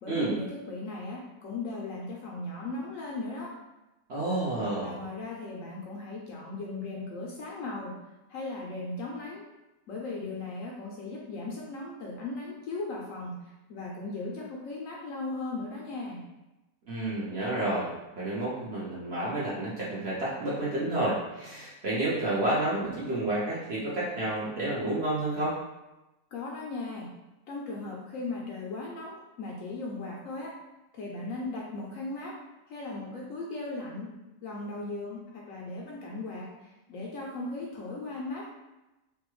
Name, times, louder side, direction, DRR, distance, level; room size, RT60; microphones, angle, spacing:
voice 1, 0.0-3.5 4.8-7.9 8.3-9.4 9.9-16.3 26.3-27.1 27.5-30.6 30.9-32.3 32.7-34.1 34.4-38.4, left 3 dB, 70° left, -2 dB, 0.8 m, -37 dB
voice 2, 4.1-5.0 16.9-25.6, right 1 dB, 50° right, -8 dB, 0.9 m, -30 dB
3.3 x 2.2 x 3.0 m, 1.0 s
omnidirectional pair, 1.7 m